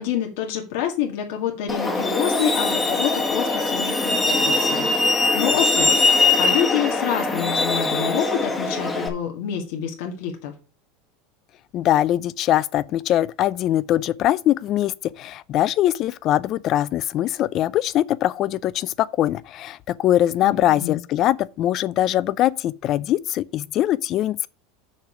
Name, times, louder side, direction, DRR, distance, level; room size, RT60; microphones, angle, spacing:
voice 1, 0.0-10.5 20.4-21.0, left 9 dB, 70° left, 1.9 m, -28 dB
Truck, 1.7-9.1, left 3 dB, 10° left, 1.3 m, -21 dB
voice 2, 11.7-24.5, left 13 dB, 35° left, 0.4 m, -22 dB
6.6 x 5.0 x 7.0 m
supercardioid pair, 165°, 0 cm